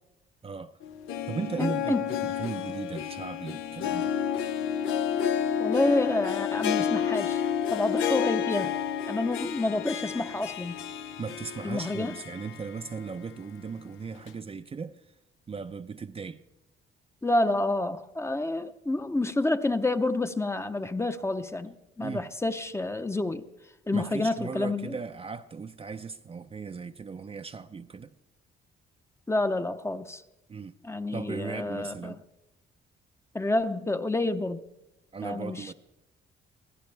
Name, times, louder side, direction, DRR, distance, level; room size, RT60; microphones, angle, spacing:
voice 1, 0.4-0.8 1.3-4.1 11.2-15.2 15.5-16.4 22.0-22.3 23.9-28.1 30.5-30.7 31.1-32.2 35.1-35.7, right 5 dB, 30° right, 0.6 m, -37 dB
Harp, 0.8-13.0 13.3-13.4 14.3-14.4, left 8 dB, 85° left, 0.8 m, -30 dB
voice 2, 1.6-2.1 5.6-8.8 9.1-10.8 11.6-12.2 17.2-23.5 23.9-25.0 29.3-30.2 30.8-32.2 33.3-34.6 35.2-35.7, left 2 dB, 15° left, 0.7 m, -29 dB
24.0 x 16.0 x 3.4 m
cardioid pair, 90°, 20 cm